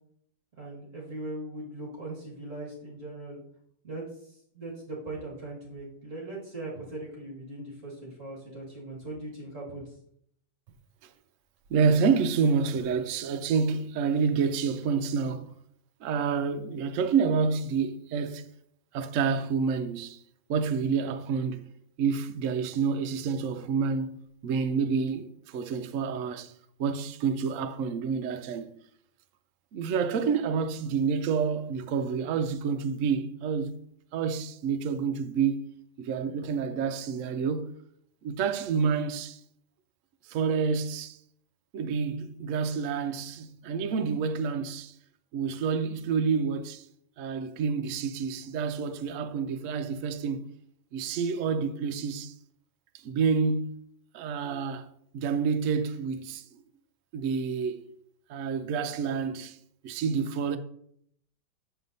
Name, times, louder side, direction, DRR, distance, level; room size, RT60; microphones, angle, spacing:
voice 1, 0.6-3.4 3.8-9.8, right 2 dB, 45° right, 2.0 m, -40 dB
voice 2, 11.7-15.5 16.0-18.5 18.9-20.2 20.5-21.6 22.0-24.2 24.4-26.5 26.8-28.7 29.7-33.8 34.1-35.6 36.0-37.7 38.2-39.4 40.2-41.2 41.7-44.9 45.3-46.9 47.2-50.5 50.9-52.3 52.9-53.8 54.1-54.9 55.1-56.6 57.1-57.8 58.3-59.6 59.8-60.6, right 5 dB, 80° right, 0.7 m, -28 dB
9.0 x 6.8 x 2.7 m
omnidirectional pair, 2.0 m